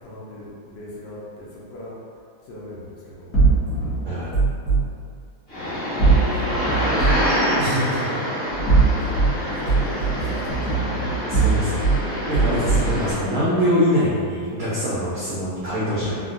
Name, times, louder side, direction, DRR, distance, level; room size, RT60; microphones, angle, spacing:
voice 1, 0.0-1.9 2.5-3.4 3.7-4.0 5.7-5.8 6.0-6.3 6.7-7.4 8.3-8.5 8.9-10.8, left 1 dB, 70° left, -7 dB, 1.2 m, -39 dB
sound 1, 3.3-4.8 6.0-7.3 8.5-9.3 9.7-12.0 12.3-13.0, right 4 dB, 50° left, 1.1 m, -20 dB
voice 2, 4.0-4.4 6.2-6.3 7.6-8.0 11.3-12.0 12.3-16.2, equal, 80° right, -9 dB, 0.8 m, -24 dB
sound 2, 5.5-13.1, equal, 35° left, 1.3 m, -26 dB
3.6 x 2.1 x 2.4 m, 2.2 s
omnidirectional pair, 2.2 m